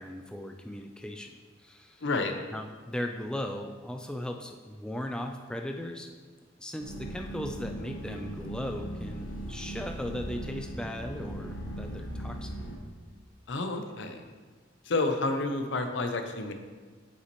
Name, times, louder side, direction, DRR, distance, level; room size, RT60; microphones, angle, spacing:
voice 1, 0.0-1.3 1.6-2.1 2.5-6.1 6.6-12.5, left 1 dB, 5° left, 3 dB, 0.3 m, -37 dB
voice 2, 2.0-2.3 13.5-14.2 14.8-16.5, left 3 dB, 65° left, 6 dB, 0.6 m, -30 dB
sound 1, 6.8-12.8, right 1 dB, 85° left, 1.0 m, -39 dB
8.0 x 5.5 x 3.0 m, 1.5 s
head